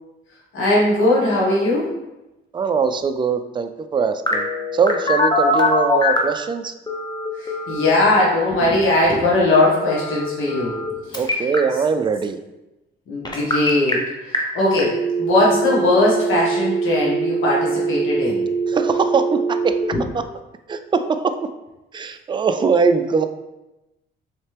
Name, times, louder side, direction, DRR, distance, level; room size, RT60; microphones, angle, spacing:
voice 1, 0.5-1.9 7.4-11.5 13.1-18.7 19.9-20.1, left 2 dB, 85° left, -5 dB, 1.4 m, -20 dB
voice 2, 2.5-4.5 4.7-6.7 11.1-12.4 18.7-19.8 20.1-20.2 20.7-21.3 21.9-23.3, right 5 dB, 25° right, 8 dB, 0.3 m, -21 dB
Telephone, 4.3-6.3 6.9-7.9 9.9-10.9 11.1-11.6 13.2-13.9 14.3-14.4 14.8-19.8, right 1 dB, 20° left, 0.8 m, -22 dB
4.2 x 3.3 x 3.3 m, 0.98 s
cardioid pair, 90°, 20 cm